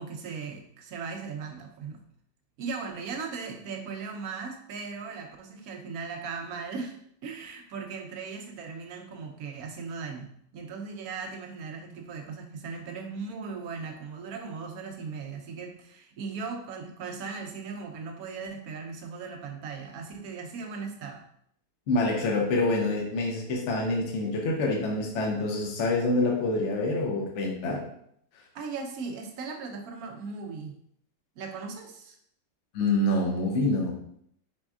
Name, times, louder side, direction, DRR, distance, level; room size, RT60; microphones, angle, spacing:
voice 1, 0.0-2.0 2.6-21.2 28.5-30.8 31.4-32.2, right 5 dB, 65° right, 3 dB, 1.1 m, -38 dB
voice 2, 21.9-27.8 32.7-33.9, left 2 dB, 50° left, 0 dB, 1.0 m, -26 dB
4.4 x 4.3 x 2.4 m, 0.68 s
omnidirectional pair, 1.9 m